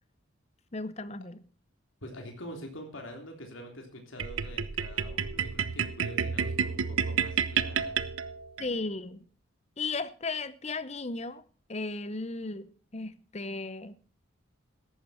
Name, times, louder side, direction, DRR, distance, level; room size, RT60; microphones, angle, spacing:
voice 1, 0.7-1.4 8.6-9.2 9.8-11.4 11.7-14.0, left 3 dB, 30° left, 0.7 m, -35 dB
voice 2, 2.0-8.0, equal, 70° left, 3.4 m, -45 dB
sound 1, 4.2-8.7, right 7 dB, 80° right, 0.8 m, -30 dB
14.0 x 11.5 x 4.4 m
head